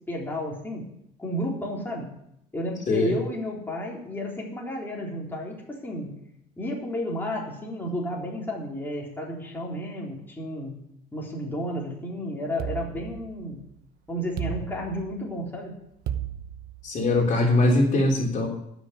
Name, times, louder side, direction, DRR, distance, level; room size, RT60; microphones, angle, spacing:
voice 1, 0.1-0.9 1.2-2.1 2.5-6.1 6.6-10.8 11.1-13.6 14.1-15.7, equal, 10° left, -3 dB, 3.8 m, -32 dB
sound 1, 12.6-13.7 14.4-15.4 16.1-17.2, right 10 dB, 70° right, 1.0 m, -34 dB
voice 2, 16.8-18.5, left 2 dB, 50° left, 0 dB, 3.3 m, -21 dB
13.0 x 6.4 x 9.8 m, 0.76 s
cardioid pair, 110°, 17 cm